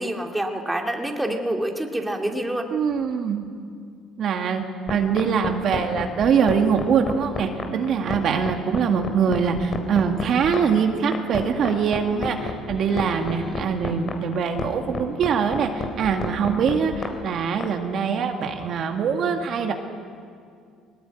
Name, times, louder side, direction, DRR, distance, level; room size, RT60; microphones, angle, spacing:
voice 1, 0.0-2.7, right 1 dB, 10° right, 2 dB, 2.3 m, -27 dB
voice 2, 2.7-3.5 4.2-4.6 4.9-19.7, right 6 dB, 55° right, 4 dB, 1.9 m, -23 dB
sound 1, 4.9-17.7, left 4 dB, 40° left, 3.3 m, -30 dB
sound 2, 11.9-14.2 15.4-16.6 17.1-17.2, left 2 dB, 15° left, 5.4 m, -41 dB
20.5 x 19.5 x 9.2 m, 2.3 s
cardioid pair, 95°, 0 cm